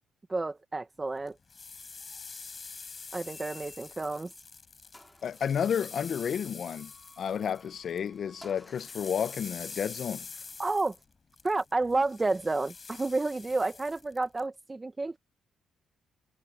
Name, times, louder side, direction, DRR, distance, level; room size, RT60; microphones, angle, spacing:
voice 1, 0.3-1.4 3.1-4.3 10.6-11.0 11.4-15.2, right 3 dB, 20° right, 0.9 m, -30 dB
sound 1, 1.3-8.1 8.3-14.4, left 4 dB, 35° left, 4.0 m, -46 dB
sound 2, 3.2-4.2 4.6-4.7 4.9-11.0, equal, ahead, 5.2 m, -58 dB
voice 2, 5.2-10.3, left 8 dB, 55° left, 0.8 m, -31 dB
cardioid pair, 90°, 0 cm